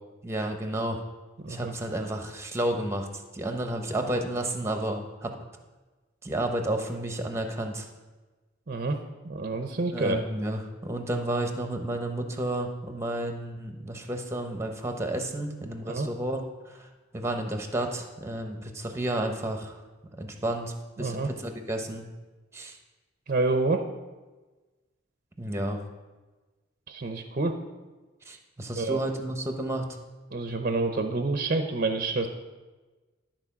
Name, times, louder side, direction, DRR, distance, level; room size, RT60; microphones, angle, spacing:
voice 1, 0.2-1.0 1.5-3.1 3.3-5.3 6.2-7.9 9.9-16.9 17.1-19.7 20.2-22.0 22.5-22.8 25.4-25.8 28.3-30.0, right 1 dB, 15° right, 4 dB, 0.9 m, -31 dB
voice 2, 1.4-1.7 8.7-10.2 15.9-16.1 21.0-21.3 23.3-23.8 26.9-27.5 28.8-29.0 30.3-32.3, right 3 dB, 45° right, 6 dB, 0.7 m, -28 dB
12.5 x 4.4 x 5.9 m, 1.2 s
head